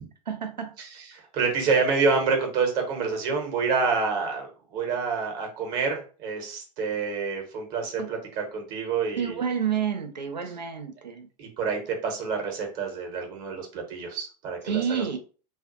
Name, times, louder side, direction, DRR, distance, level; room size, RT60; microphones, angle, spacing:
voice 1, 0.3-0.7 8.0-8.1 9.2-11.3 14.6-15.2, right 7 dB, 90° right, 0.5 m, -29 dB
voice 2, 1.1-9.4 11.4-15.2, right 4 dB, 45° right, 0.9 m, -28 dB
2.4 x 2.2 x 2.5 m
figure-of-eight pair, 90°, 21 cm